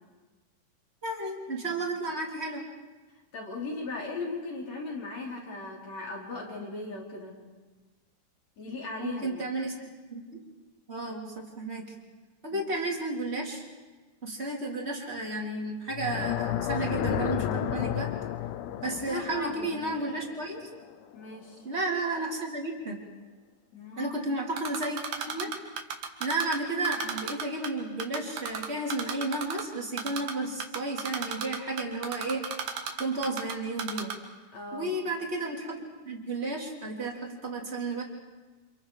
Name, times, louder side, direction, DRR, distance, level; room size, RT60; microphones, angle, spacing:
voice 1, 1.0-2.7 9.0-9.7 10.1-10.4 10.9-11.8 12.4-13.6 14.2-18.1 18.8-20.7 21.6-23.0 24.0-25.5 26.2-32.5 33.0-34.1 34.7-38.0, right 2 dB, 20° right, -1 dB, 3.2 m, -32 dB
voice 2, 3.3-7.4 8.6-9.7 12.5-12.6 18.6-19.9 21.1-21.7 23.7-24.2 30.1-30.3 34.5-34.9, left 3 dB, 50° left, -2 dB, 5.2 m, -38 dB
sound 1, 15.9-21.0, left 11 dB, 75° left, 2.2 m, -32 dB
Typing, 24.6-26.6 26.9-27.7 28.0-29.6 30.0-30.3 30.6-33.5 33.8-34.1, right 8 dB, 75° right, 3.4 m, -33 dB
30.0 x 27.0 x 4.9 m, 1.3 s
omnidirectional pair, 3.9 m